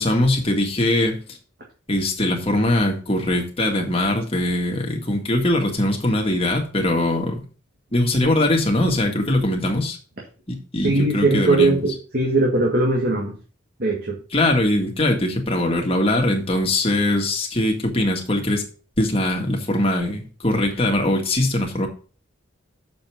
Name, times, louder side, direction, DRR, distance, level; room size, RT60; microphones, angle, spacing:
voice 1, 0.0-1.4 1.9-7.4 7.9-10.0 10.5-11.8 14.3-18.6 19.0-21.9, left 1 dB, 30° left, 2 dB, 1.7 m, -21 dB
voice 2, 10.8-13.4 13.8-14.2, right 2 dB, 50° right, -1 dB, 1.8 m, -20 dB
6.9 x 5.3 x 6.1 m, 0.37 s
head